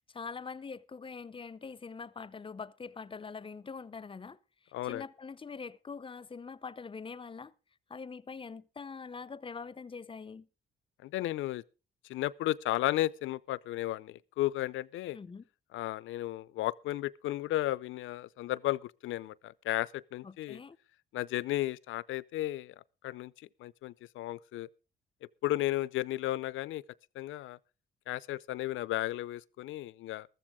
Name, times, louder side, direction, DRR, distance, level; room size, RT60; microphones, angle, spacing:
voice 1, 0.1-4.4 4.8-7.5 7.9-10.5 15.1-15.4 20.2-20.8, left 5 dB, 25° left, 0.7 m, -43 dB
voice 2, 4.7-5.0 11.0-11.6 12.1-15.2 15.7-20.6 21.1-22.7 23.0-23.3 23.6-24.7 25.4-26.8 27.2-27.6 28.1-30.3, left 15 dB, 80° left, 0.6 m, -34 dB
15.0 x 13.5 x 3.6 m
cardioid pair, 90°, 20 cm